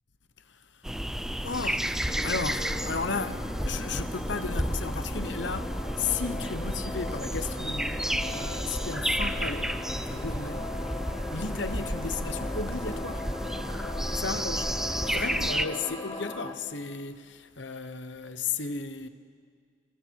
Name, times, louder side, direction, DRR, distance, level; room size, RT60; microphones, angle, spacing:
voice 1, 0.4-0.9 1.4-9.8 10.1-10.7 11.3-13.3 14.1-14.7 15.0-19.1, left 4 dB, 65° left, 1.1 m, -34 dB
sound 1, 0.8-15.7, equal, 5° right, 0.6 m, -32 dB
sound 2, 2.1-16.5, left 2 dB, 20° left, 1.5 m, -39 dB
29.5 x 28.0 x 4.7 m
head